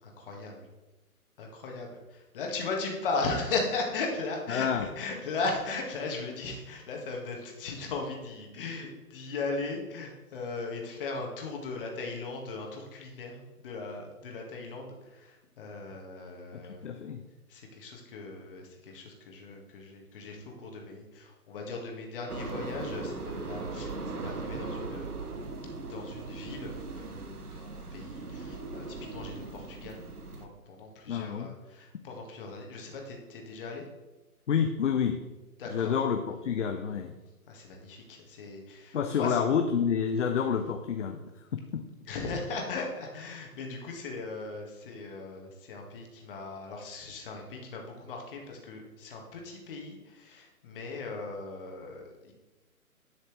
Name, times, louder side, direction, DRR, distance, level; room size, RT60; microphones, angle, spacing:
voice 1, 0.0-0.7 1.4-16.9 17.5-25.2 25.8-30.0 30.3-33.8 35.6-35.9 37.5-39.4 42.0-52.3, left 3 dB, 35° left, 1 dB, 1.9 m, -38 dB
voice 2, 4.5-4.9 16.5-17.2 31.1-31.5 34.5-35.2 35.7-37.1 38.9-41.2 41.5-41.8, left 7 dB, 55° left, 6 dB, 0.7 m, -28 dB
sound 1, 22.3-30.5, right 3 dB, 85° right, 1.2 m, -39 dB
10.5 x 6.4 x 3.3 m, 1.1 s
figure-of-eight pair, 140°, 44 cm